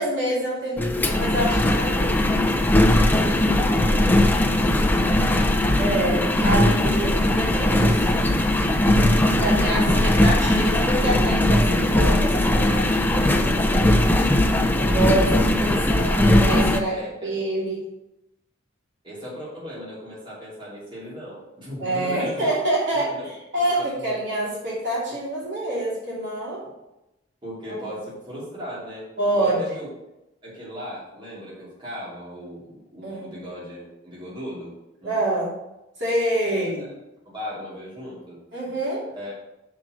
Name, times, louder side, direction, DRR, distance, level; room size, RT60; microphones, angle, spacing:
voice 1, 0.0-2.2 5.8-8.4 9.4-14.1 14.7-17.8 21.8-26.6 27.7-27.9 29.2-29.7 33.0-33.4 35.0-35.6 36.0-36.9 38.5-39.1, right 1 dB, 60° right, -6 dB, 2.9 m, -27 dB
Engine, 0.8-16.8, left 1 dB, 10° left, 0.5 m, -19 dB
voice 2, 2.9-6.2 9.0-10.1 16.8-17.4 19.0-22.5 22.9-23.2 23.5-23.9 27.4-29.9 30.4-34.7 35.0-35.2 36.4-36.9 37.2-38.4 39.1-39.3, equal, 25° right, -8 dB, 2.8 m, -37 dB
6.4 x 4.7 x 6.3 m, 0.93 s
head